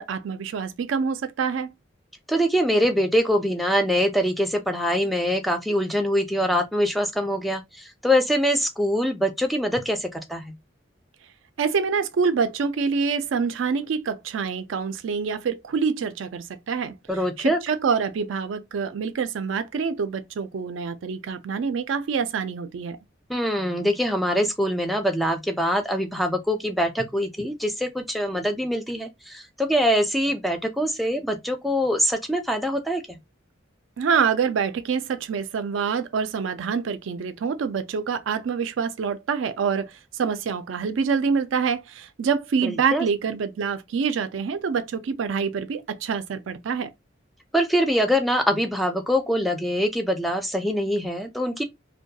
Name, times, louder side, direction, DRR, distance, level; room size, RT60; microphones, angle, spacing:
voice 1, 0.0-1.7 11.6-16.9 17.4-23.0 34.0-46.9, right 6 dB, 80° right, 0.4 m, -26 dB
voice 2, 2.3-10.5 17.1-17.6 23.3-33.2 42.6-43.1 47.5-51.6, equal, ahead, 0.3 m, -24 dB
2.2 x 2.2 x 2.7 m
head